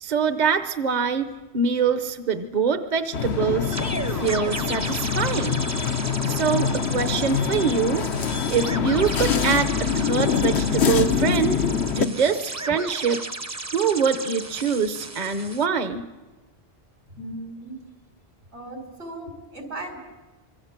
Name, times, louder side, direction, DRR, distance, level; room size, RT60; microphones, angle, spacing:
voice 1, 0.0-1.3 1.5-3.8 4.1-5.6 6.3-8.0 8.5-11.6 12.0-13.2 13.7-16.1, right 6 dB, 45° right, 9 dB, 1.0 m, -24 dB
sound 1, 3.1-12.1, left 7 dB, 90° left, 1.2 m, -24 dB
sound 2, 3.7-15.7, right 2 dB, 20° right, 0.7 m, -35 dB
voice 2, 17.1-17.7 18.5-20.0, right 1 dB, 80° right, 4 dB, 4.7 m, -37 dB
26.0 x 22.5 x 7.3 m, 1.2 s
omnidirectional pair, 1.1 m